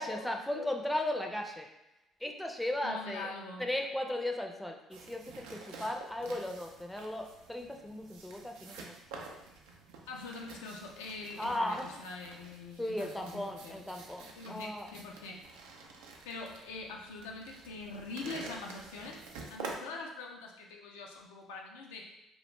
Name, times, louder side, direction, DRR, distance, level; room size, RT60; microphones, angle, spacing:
voice 1, 0.0-1.7 2.2-3.3 3.6-8.9 11.4-11.9 12.8-14.9 19.6-19.8, left 1 dB, 5° left, 3 dB, 0.4 m, -36 dB
voice 2, 2.8-3.7 10.1-13.9 14.4-15.4 16.3-19.2 19.5-22.1, left 3 dB, 85° left, 0 dB, 0.3 m, -44 dB
sound 1, 4.9-19.8, right 4 dB, 80° right, 0.3 m, -49 dB
2.4 x 2.1 x 3.0 m, 0.94 s
hypercardioid pair, 60°, 0 cm